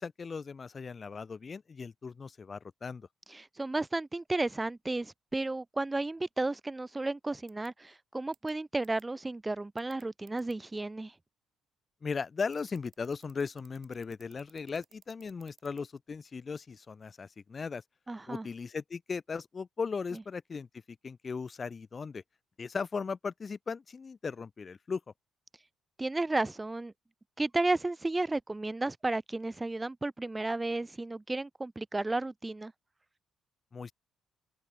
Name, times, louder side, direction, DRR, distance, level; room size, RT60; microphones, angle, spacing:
voice 1, 0.0-3.1 12.0-17.8 18.3-20.7 21.0-22.2 22.6-25.0 33.7-33.9, left 5 dB, 25° left, 1.3 m, -37 dB
voice 2, 3.3-11.2 18.1-18.5 26.0-26.9 27.4-32.7, right 2 dB, 10° right, 0.3 m, -33 dB
sound 1, 7.5-7.7 8.3-8.5 8.8-9.0 9.8-10.5 12.4-15.8, right 8 dB, 45° right, 6.0 m, -59 dB
cardioid pair, 160°, 0 cm